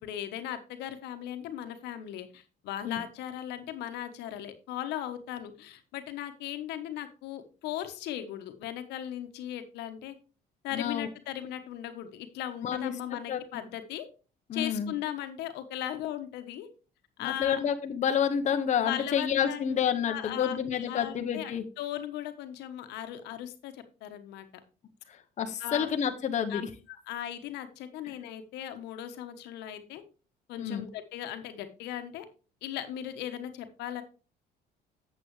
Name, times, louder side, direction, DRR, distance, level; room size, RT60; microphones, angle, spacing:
voice 1, 0.0-10.1 10.6-14.0 14.5-16.7 17.2-17.6 18.8-19.8 20.1-24.5 25.6-25.9 26.5-26.6 26.9-30.0 30.5-32.2 32.6-34.0, left 11 dB, 85° left, 9 dB, 1.1 m, -38 dB
voice 2, 10.7-11.1 12.6-12.9 13.3-13.6 14.5-14.9 17.2-21.6 25.4-26.7 28.1-28.2 30.6-30.9, left 8 dB, 45° left, 6 dB, 0.9 m, -29 dB
8.6 x 7.5 x 3.2 m, 0.34 s
cardioid pair, 110°, 17 cm